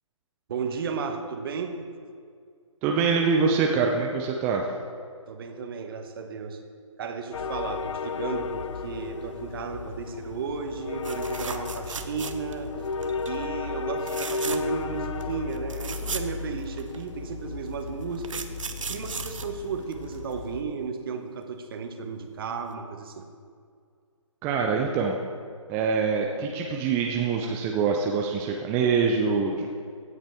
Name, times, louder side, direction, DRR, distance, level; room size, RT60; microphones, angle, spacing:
voice 1, 0.5-1.8 5.3-6.6 7.0-12.7 13.3-18.5 18.9-23.3, right 5 dB, 45° right, 6 dB, 1.1 m, -34 dB
voice 2, 2.8-4.7 24.4-25.2 25.7-29.7, right 5 dB, 10° right, 1 dB, 0.4 m, -24 dB
sound 1, 7.3-20.6, left 4 dB, 65° left, 0.6 m, -34 dB
sound 2, 11.0-12.7 13.0-13.3 14.0-14.8 15.2-15.3 15.5-17.0 17.8-20.3 22.2-22.4 22.7-22.8, right 5 dB, 70° right, 0.8 m, -36 dB
16.0 x 7.2 x 3.5 m, 2.1 s
figure-of-eight pair, 145°, 17 cm